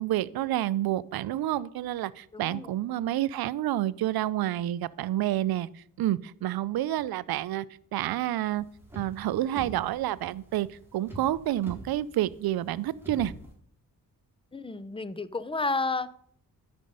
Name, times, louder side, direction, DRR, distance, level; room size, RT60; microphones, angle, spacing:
voice 1, 0.0-7.7 7.9-8.6 9.0-13.3, right 13 dB, 80° right, 19 dB, 0.5 m, -29 dB
voice 2, 2.3-2.7 14.5-16.1, left 3 dB, 15° left, 16 dB, 0.6 m, -31 dB
sound 1, 8.4-13.5, right 1 dB, 5° right, 4.0 m, -44 dB
13.0 x 5.2 x 5.4 m, 0.63 s
cardioid pair, 65°, 36 cm